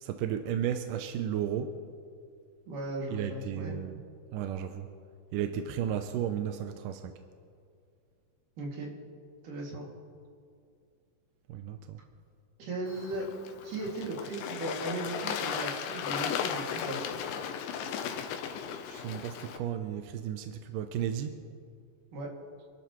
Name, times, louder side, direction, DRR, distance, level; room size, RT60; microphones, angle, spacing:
voice 1, 0.0-1.7 3.1-4.0 4.3-4.9 5.3-7.1 11.5-12.0 18.9-21.3, right 9 dB, 80° right, 7 dB, 2.1 m, -33 dB
voice 2, 2.7-3.8 8.6-8.9 9.4-9.9 12.6-13.3 13.6-17.0 22.1-22.3, right 2 dB, 60° right, -3 dB, 3.9 m, -37 dB
Bird / Water, 12.9-19.6, left 8 dB, 75° left, 2.3 m, -36 dB
27.0 x 12.5 x 3.1 m, 2.3 s
omnidirectional pair, 4.3 m